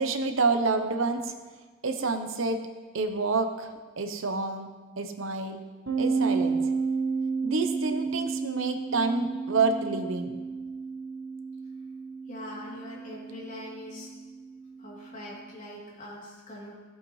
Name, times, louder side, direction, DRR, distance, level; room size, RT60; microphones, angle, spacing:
voice 1, 0.0-1.3 1.8-2.6 2.9-4.7 5.0-5.6 6.0-6.6 7.4-10.4, right 3 dB, 75° right, 7 dB, 0.9 m, -28 dB
sound 1, 5.9-15.3, right 4 dB, 60° right, 1.3 m, -32 dB
voice 2, 12.3-14.1 14.8-16.7, left 1 dB, 40° left, -6 dB, 3.0 m, -42 dB
14.0 x 8.3 x 3.2 m, 1.3 s
head